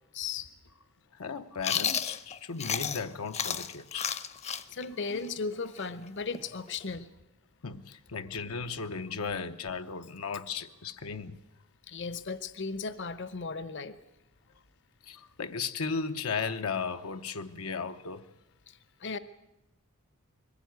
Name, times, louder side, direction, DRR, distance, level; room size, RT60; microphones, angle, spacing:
voice 1, 0.1-0.5 4.7-7.1 11.9-14.0 19.0-19.2, left 4 dB, 60° left, 0.9 m, -36 dB
voice 2, 1.1-4.1 5.1-5.3 7.6-11.4 15.0-18.3, left 5 dB, 85° left, 0.9 m, -36 dB
Chewing mastication, 1.6-3.1 3.3-6.9, left 7 dB, 30° left, 0.7 m, -32 dB
21.5 x 15.0 x 9.4 m
head